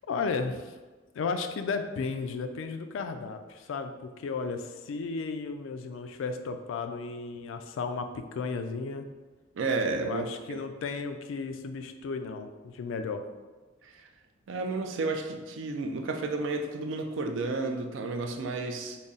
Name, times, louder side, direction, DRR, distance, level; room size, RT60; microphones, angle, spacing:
voice 1, 0.1-0.7 1.1-9.1 10.0-13.2, left 4 dB, 70° left, 8 dB, 0.3 m, -34 dB
voice 2, 9.5-10.6 13.8-14.1 14.5-19.0, right 3 dB, 70° right, 5 dB, 0.4 m, -32 dB
4.0 x 2.0 x 3.6 m, 1.3 s
head